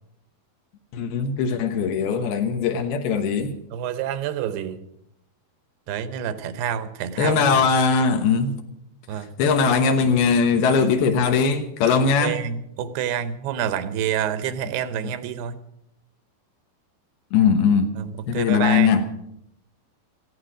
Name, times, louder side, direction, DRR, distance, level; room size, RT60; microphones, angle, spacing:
voice 1, 0.9-3.5 7.2-8.6 9.4-12.4 17.3-17.9 18.3-19.0, left 5 dB, 80° left, 3.1 m, -20 dB
voice 2, 3.7-4.8 5.9-7.5 9.1-9.3 12.2-15.6 18.0-18.9, right 9 dB, 90° right, 3.0 m, -28 dB
17.0 x 15.0 x 5.0 m
omnidirectional pair, 4.5 m